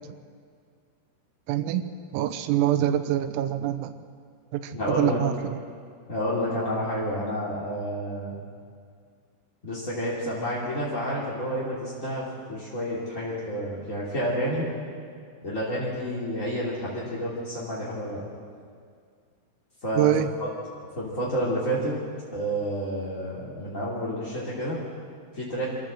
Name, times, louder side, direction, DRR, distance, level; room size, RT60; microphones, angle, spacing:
voice 1, 1.5-1.9 2.1-3.9 4.5-5.6 20.0-20.3, right 12 dB, 85° right, 9 dB, 3.5 m, -25 dB
voice 2, 4.7-5.2 6.1-8.3 9.6-14.7 15.4-18.2 19.8-20.1 21.0-22.0 22.3-24.8 25.3-25.6, equal, 25° left, -7 dB, 1.8 m, -29 dB
25.5 x 14.0 x 7.6 m, 2.1 s
omnidirectional pair, 5.9 m